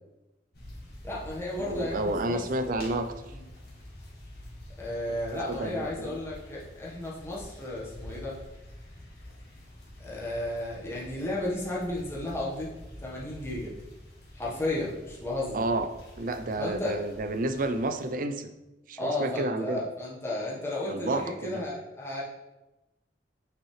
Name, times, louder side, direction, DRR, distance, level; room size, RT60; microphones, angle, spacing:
sound 1, 0.5-18.1, left 1 dB, 60° left, 1.7 m, -47 dB
voice 1, 1.0-2.9 3.3-3.4 4.8-8.4 10.0-12.7 13.0-13.7 14.3-15.6 16.6-17.0 19.0-22.2, left 1 dB, 15° left, -6 dB, 1.3 m, -33 dB
voice 2, 1.6-3.4 5.1-5.2 5.5-6.2 15.5-15.9 16.2-18.5 18.9-19.8 20.9-21.6, right 2 dB, 45° right, 8 dB, 0.5 m, -30 dB
6.1 x 5.4 x 3.2 m, 1.0 s
head